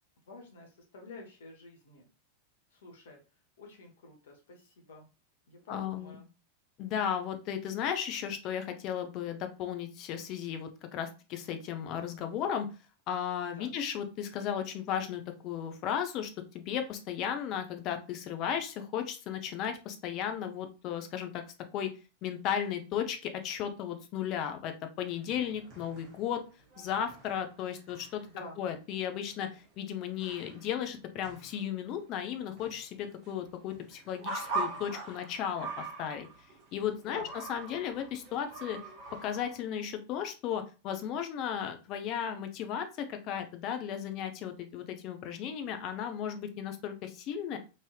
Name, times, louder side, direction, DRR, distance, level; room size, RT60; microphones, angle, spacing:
voice 1, 0.3-2.1 2.7-3.2 3.6-5.1 5.5-6.3 13.5-13.7 28.2-28.6 37.1-37.3, left 2 dB, 60° left, 1 dB, 0.9 m, -49 dB
voice 2, 5.7-6.2 6.8-12.7 13.1-16.3 16.5-21.4 21.7-21.9 22.2-26.4 26.8-28.2 28.6-36.3 36.7-38.8 39.2-47.6, left 9 dB, 40° left, 7 dB, 0.5 m, -35 dB
sound 1, 25.0-28.4 28.7-28.8 29.0-30.9 31.2-39.6, right 3 dB, 40° right, 1.0 m, -43 dB
3.2 x 2.6 x 2.2 m, 0.32 s
figure-of-eight pair, 90°, 0 cm